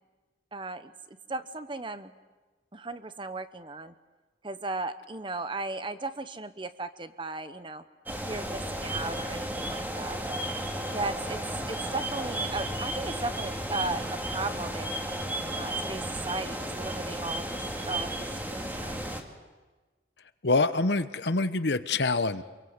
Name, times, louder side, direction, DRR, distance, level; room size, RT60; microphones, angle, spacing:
voice 1, 0.5-2.1 2.7-3.9 4.4-7.8 8.2-10.5 10.9-11.4 11.7-15.0 15.6-18.1 18.5-19.1, right 3 dB, 30° right, 11 dB, 1.0 m, -36 dB
sound 1, 8.1-19.2, right 1 dB, 10° right, 2.2 m, -34 dB
voice 2, 20.4-22.4, left 3 dB, 70° left, 12 dB, 1.0 m, -25 dB
27.5 x 23.0 x 8.1 m, 1.3 s
head